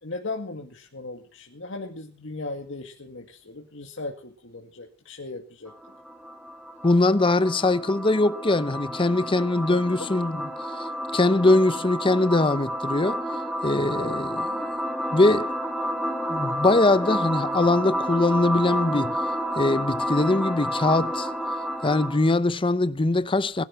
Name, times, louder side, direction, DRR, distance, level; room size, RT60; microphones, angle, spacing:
voice 1, 0.0-5.7 9.7-10.4 13.9-14.2, left 2 dB, 70° left, 2.1 m, -37 dB
sound 1, 5.7-22.3, equal, ahead, 2.0 m, -30 dB
voice 2, 6.8-10.5 11.1-13.2 13.6-14.5 15.1-15.5 16.3-19.2 19.6-21.3 21.8-23.6, left 2 dB, 25° left, 0.7 m, -22 dB
21.0 x 11.5 x 5.8 m
head